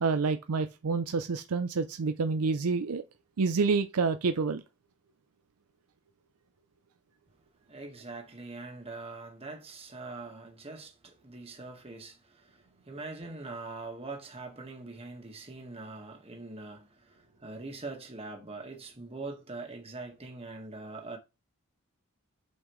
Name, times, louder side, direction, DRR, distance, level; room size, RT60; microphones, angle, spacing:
voice 1, 0.0-3.0 3.4-4.6, right 4 dB, 85° right, 0.5 m, -28 dB
voice 2, 7.7-21.2, right 3 dB, 25° right, 1.5 m, -43 dB
8.0 x 5.6 x 3.1 m
head